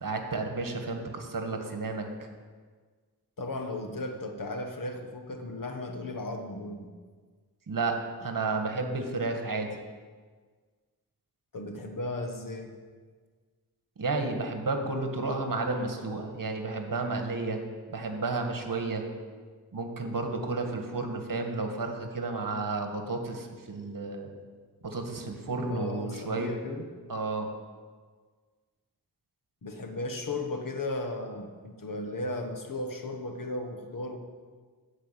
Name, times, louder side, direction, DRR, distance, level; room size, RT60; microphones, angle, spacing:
voice 1, 0.0-2.0 7.7-9.7 14.0-17.6 17.9-19.0 19.7-24.3 24.8-26.5 27.1-27.5, right 3 dB, 55° right, 4 dB, 1.6 m, -32 dB
voice 2, 3.4-6.9 11.5-12.7 25.7-26.9 29.6-34.2, left 2 dB, 55° left, 4 dB, 1.4 m, -35 dB
13.5 x 5.0 x 9.0 m, 1.5 s
wide cardioid pair, 105°, 38 cm